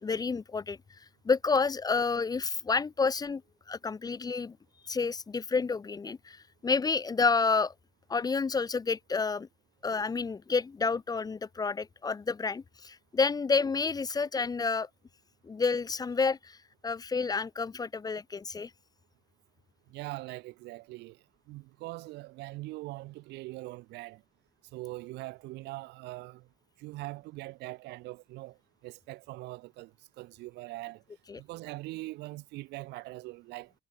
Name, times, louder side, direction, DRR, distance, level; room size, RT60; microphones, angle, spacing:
voice 1, 0.0-0.8 1.2-3.4 3.7-4.6 4.8-7.7 8.1-9.5 9.8-14.9 15.4-16.6 16.8-18.7 31.3-31.4, left 4 dB, 25° left, 0.7 m, -29 dB
voice 2, 19.9-21.2 21.5-24.2 24.7-26.5 26.8-28.6 28.8-31.0 31.4-33.7, right 20 dB, 85° right, 1.5 m, -42 dB
cardioid pair, 110°, 17 cm